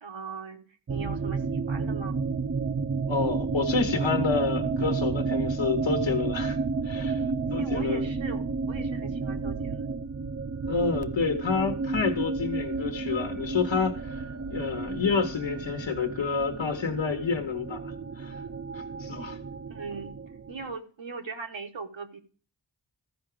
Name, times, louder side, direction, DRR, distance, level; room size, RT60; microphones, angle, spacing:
voice 1, 0.0-0.6 0.9-2.2 7.6-9.9 19.7-20.1 20.5-22.2, right 4 dB, 85° right, 4 dB, 1.3 m, -39 dB
sound 1, 0.9-20.7, right 4 dB, 35° right, 0.5 m, -31 dB
voice 2, 3.1-6.6 6.8-7.2 7.5-8.0 10.7-18.4 18.7-19.4, left 5 dB, 80° left, 5 dB, 1.1 m, -29 dB
14.0 x 4.8 x 4.9 m, 0.40 s
wide cardioid pair, 60°, 45 cm